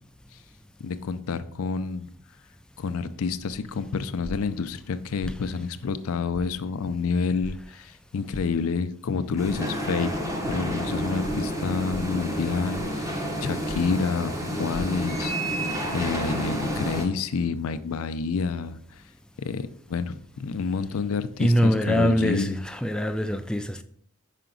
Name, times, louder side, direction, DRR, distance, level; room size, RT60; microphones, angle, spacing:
voice 1, 0.8-2.1 2.8-10.1 10.4-18.8 19.4-22.6, left 5 dB, 70° left, 0.4 m, -29 dB
sound 1, 5.3-5.4 6.3-6.5 7.4-7.6 8.3-8.5 9.4-9.6 10.4-10.6 11.2-11.4 11.9-12.1 12.7-13.0 13.7-14.0 14.7-14.8, left 1 dB, 60° right, 1.5 m, -38 dB
sound 2, 9.4-17.1, equal, 15° right, 0.8 m, -30 dB
voice 2, 21.4-23.8, equal, 5° left, 0.4 m, -23 dB
5.8 x 5.0 x 3.8 m
head